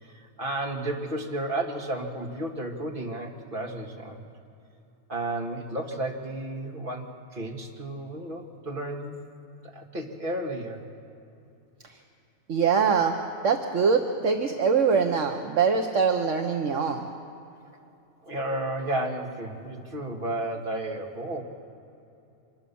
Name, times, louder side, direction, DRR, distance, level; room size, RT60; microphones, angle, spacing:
voice 1, 0.0-4.2 5.1-9.1 9.6-10.8 18.2-21.4, right 1 dB, 35° right, 1 dB, 2.3 m, -32 dB
voice 2, 12.5-13.2 13.4-17.1, right 5 dB, 60° right, 4 dB, 1.3 m, -23 dB
25.5 x 19.5 x 7.1 m, 2.8 s
omnidirectional pair, 1.5 m